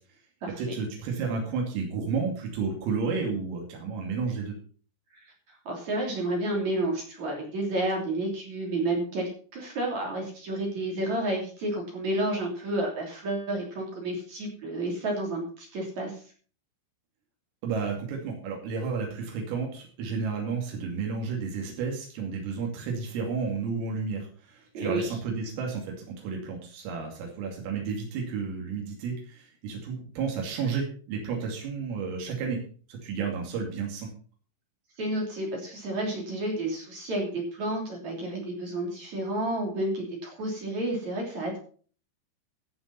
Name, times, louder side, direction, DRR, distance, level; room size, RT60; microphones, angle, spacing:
voice 1, 0.6-4.6 17.6-32.6 32.9-34.1, right 5 dB, 90° right, 0 dB, 5.2 m, -32 dB
voice 2, 5.2-16.2 24.7-25.2 35.0-41.6, right 1 dB, 40° right, 0 dB, 3.8 m, -31 dB
15.5 x 7.0 x 5.5 m, 0.43 s
omnidirectional pair, 5.7 m